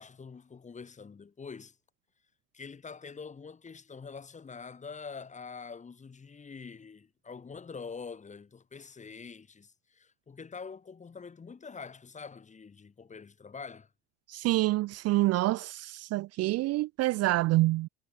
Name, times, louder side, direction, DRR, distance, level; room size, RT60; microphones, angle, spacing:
voice 1, 0.0-1.8 2.5-13.9, left 5 dB, 20° left, 1.3 m, -45 dB
voice 2, 14.3-17.9, right 18 dB, 50° right, 0.4 m, -27 dB
supercardioid pair, 95°, 34 cm